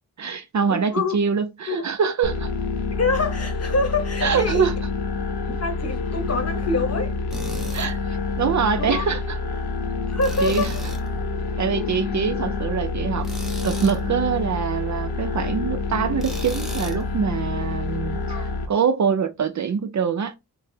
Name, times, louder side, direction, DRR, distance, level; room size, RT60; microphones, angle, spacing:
voice 1, 0.2-2.5 4.2-4.7 7.7-9.4 10.4-10.7 11.6-13.3 13.6-20.3, right 6 dB, 50° right, 0.4 m, -24 dB
voice 2, 0.7-1.2 1.7-1.8 3.0-4.7 5.5-7.1 8.8-9.1 10.1-10.8 11.7-11.9 18.3-18.5, left 3 dB, 40° left, 0.9 m, -26 dB
sound 1, 2.2-18.7, left 4 dB, 80° left, 0.7 m, -27 dB
Tools, 7.3-7.9 10.2-11.1 13.2-14.0 16.2-17.0, equal, ahead, 0.9 m, -37 dB
3.8 x 2.0 x 2.7 m
cardioid pair, 70°, 38 cm